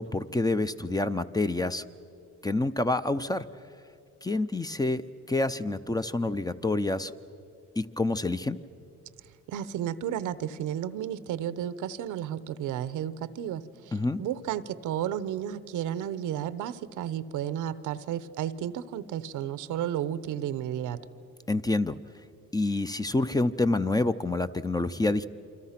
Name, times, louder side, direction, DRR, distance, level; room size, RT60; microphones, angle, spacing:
voice 1, 0.0-1.8 2.4-3.5 4.2-7.1 7.8-8.6 13.9-14.2 21.5-22.0 22.5-25.3, left 2 dB, 15° left, 12 dB, 0.6 m, -27 dB
voice 2, 9.5-21.0, right 10 dB, 85° right, 15 dB, 0.9 m, -33 dB
27.5 x 25.5 x 5.9 m, 2.5 s
cardioid pair, 90°, 30 cm